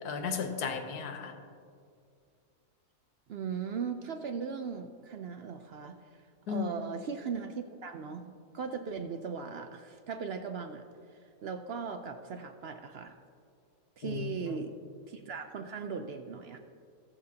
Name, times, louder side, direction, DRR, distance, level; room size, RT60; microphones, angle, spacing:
voice 1, 0.0-1.4 6.5-6.8 14.0-14.6, left 6 dB, 85° left, 6 dB, 1.4 m, -35 dB
voice 2, 3.3-6.2 6.5-10.8 11.4-13.2 14.0-14.7 15.1-16.6, right 6 dB, 75° right, 6 dB, 0.5 m, -38 dB
18.0 x 7.2 x 2.8 m, 2.3 s
omnidirectional pair, 1.7 m